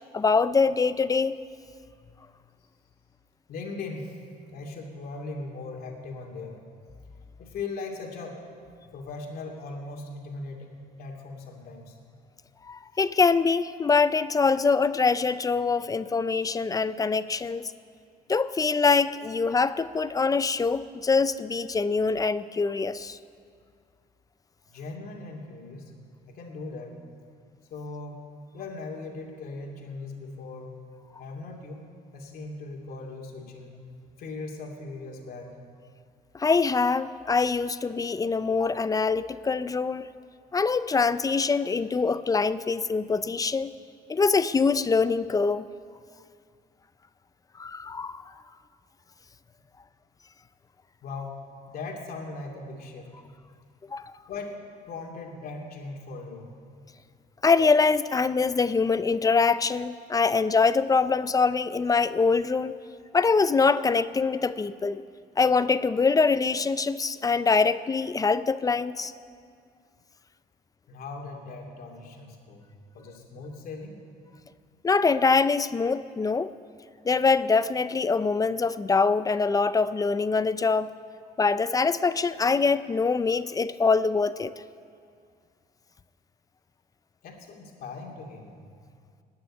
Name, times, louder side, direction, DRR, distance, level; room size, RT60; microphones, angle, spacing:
voice 1, 0.1-1.4 12.7-17.7 18.3-23.2 36.3-40.1 40.5-43.7 44.1-45.7 47.6-48.3 53.9-54.2 57.4-62.8 63.1-65.0 65.4-69.1 74.8-76.5 77.0-80.9 81.4-84.5, left 4 dB, 20° left, 15 dB, 0.4 m, -24 dB
voice 2, 3.5-4.2 4.5-6.6 7.4-8.4 8.9-12.0 24.7-25.9 26.2-27.0 27.7-30.8 31.2-31.8 32.1-33.8 34.2-35.6 51.0-51.4 51.7-53.1 54.3-56.5 70.9-72.7 72.9-74.0 87.2-88.5, left 3 dB, 60° left, 0 dB, 2.6 m, -39 dB
18.5 x 6.8 x 9.9 m, 2.2 s
cardioid pair, 110°, 17 cm